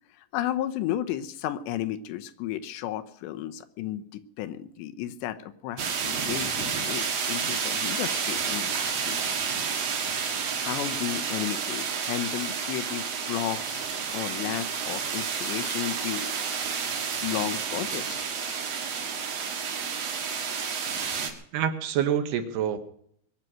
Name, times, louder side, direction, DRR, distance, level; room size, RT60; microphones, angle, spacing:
voice 1, 0.3-9.2 10.6-13.8 14.1-16.3 17.2-18.2, left 12 dB, 80° left, 10 dB, 2.9 m, -33 dB
sound 1, 5.8-21.3, right 6 dB, 50° right, 2.0 m, -30 dB
voice 2, 21.5-22.8, right 9 dB, 75° right, 8 dB, 2.9 m, -26 dB
22.0 x 9.1 x 6.2 m, 0.67 s
omnidirectional pair, 5.1 m